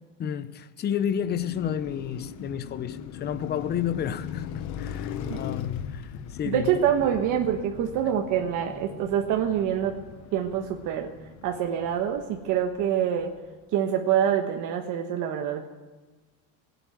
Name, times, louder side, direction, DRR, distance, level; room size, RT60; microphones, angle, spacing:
voice 1, 0.2-6.8, left 9 dB, 25° left, 0.7 m, -31 dB
Car passing by, 1.0-13.2, left 8 dB, 50° left, 1.0 m, -39 dB
voice 2, 6.4-10.0 10.3-11.1 11.4-13.3 13.7-15.7, right 9 dB, 55° right, 1.3 m, -26 dB
18.5 x 8.0 x 9.2 m
cardioid pair, 150°, 37 cm